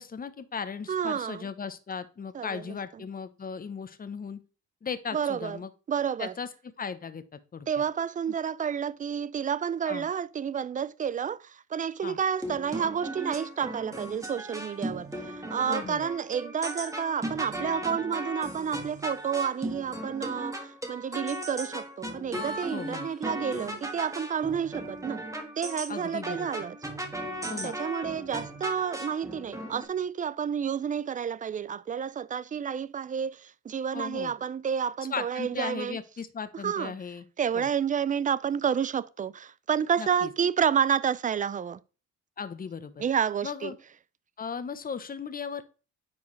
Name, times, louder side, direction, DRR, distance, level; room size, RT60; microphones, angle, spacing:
voice 1, 0.0-4.4 4.8-5.7 6.2-6.5 6.8-7.8 9.9-10.1 12.0-12.2 15.7-16.1 22.7-23.1 25.9-26.5 27.5-27.7 33.9-34.3 35.1-37.3 37.5-37.7 40.0-40.3 42.4-43.0 43.4-43.8 44.4-45.6, left 6 dB, 30° left, 0.8 m, -37 dB
voice 2, 0.9-1.5 2.3-3.0 5.1-5.6 5.9-6.4 7.7-25.2 25.6-26.8 27.6-36.0 36.5-36.9 37.4-41.8 43.0-43.8, right 7 dB, 25° right, 0.4 m, -30 dB
sound 1, 12.4-29.9, right 1 dB, 10° right, 1.5 m, -37 dB
9.5 x 4.6 x 3.2 m
cardioid pair, 90°, 30 cm